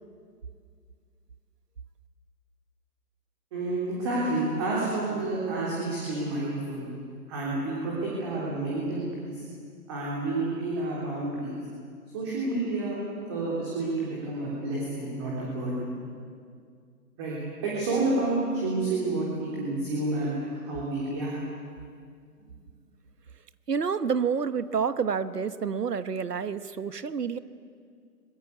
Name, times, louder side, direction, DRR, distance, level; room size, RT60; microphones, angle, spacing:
voice 1, 3.5-6.9 7.3-9.4 9.9-11.6 12.1-13.0 13.3-15.9 17.2-17.4 17.6-21.3, right 2 dB, 15° right, -6 dB, 3.5 m, -29 dB
voice 2, 23.7-27.4, right 6 dB, 75° right, 13 dB, 1.3 m, -28 dB
25.5 x 21.5 x 8.4 m, 2.2 s
hypercardioid pair, 170°, 47 cm